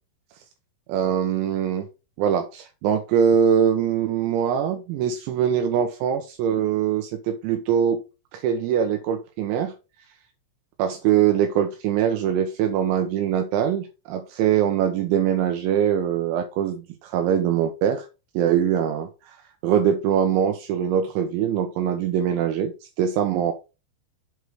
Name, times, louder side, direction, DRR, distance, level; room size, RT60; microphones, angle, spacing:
voice 1, 0.9-1.9 2.2-8.0 8.3-9.7 10.8-18.1 18.4-19.4 19.6-23.5, right 9 dB, 85° right, 2.7 m, -23 dB
7.9 x 3.1 x 4.5 m
omnidirectional pair, 5.9 m